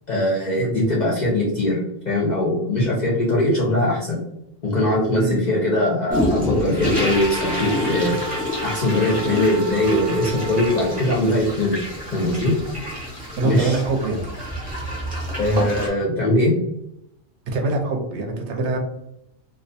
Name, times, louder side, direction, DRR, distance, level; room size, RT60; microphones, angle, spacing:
voice 1, 0.1-4.2 4.6-8.2 8.6-11.8 12.1-12.5 13.4-13.8 15.4-16.6, left 1 dB, 55° left, -5 dB, 0.5 m, -21 dB
sound 1, 6.1-15.9, left 1 dB, 10° right, 0.7 m, -28 dB
Wind instrument woodwind instrument, 7.1-11.2, right 1 dB, 90° right, 1.0 m, -34 dB
sound 2, 9.4-15.9, right 1 dB, 55° right, 0.4 m, -39 dB
voice 2, 13.4-14.2 17.5-18.8, right 3 dB, 70° right, 2 dB, 0.8 m, -23 dB
2.3 x 2.3 x 2.5 m, 0.82 s
omnidirectional pair, 1.3 m